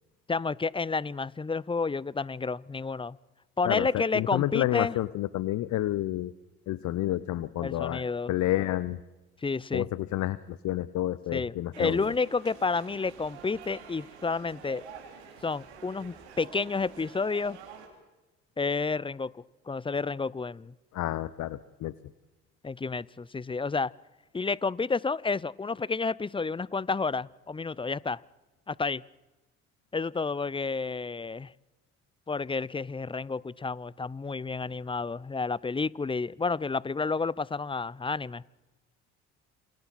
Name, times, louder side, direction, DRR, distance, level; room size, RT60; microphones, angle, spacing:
voice 1, 0.3-3.2 3.6-4.9 7.6-8.3 9.4-9.9 11.3-14.8 15.4-17.6 18.6-19.3 19.7-20.7 22.6-23.9 24.3-28.2 28.7-29.0 29.9-31.5 32.3-38.4, left 4 dB, 15° left, 0.6 m, -30 dB
voice 2, 3.6-6.3 6.7-9.0 9.7-12.1 20.9-21.9, left 14 dB, 60° left, 0.8 m, -30 dB
sound 1, 11.7-17.9, right 7 dB, 90° right, 3.2 m, -48 dB
28.5 x 26.0 x 4.3 m
hypercardioid pair, 50°, 33 cm